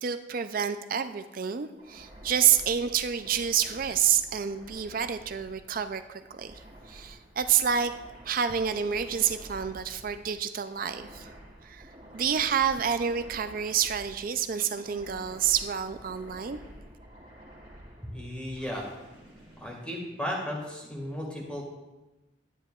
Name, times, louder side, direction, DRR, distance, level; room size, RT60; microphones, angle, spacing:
voice 1, 0.0-6.5 6.9-7.9 8.3-11.3 11.6-11.9 12.1-16.6, right 8 dB, 50° right, 10 dB, 0.4 m, -28 dB
sound 1, 1.8-20.6, equal, 30° right, 2.3 m, -50 dB
voice 2, 18.0-18.9 19.6-21.6, equal, 5° left, -2 dB, 1.8 m, -35 dB
12.0 x 9.7 x 2.4 m, 1.0 s
head